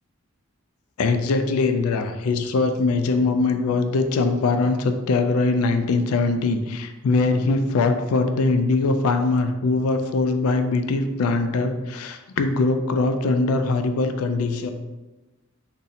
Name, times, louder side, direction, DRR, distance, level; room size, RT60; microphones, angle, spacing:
voice 1, 1.0-14.7, left 3 dB, 85° left, 8 dB, 0.4 m, -22 dB
2.7 x 2.6 x 4.0 m, 1.1 s
head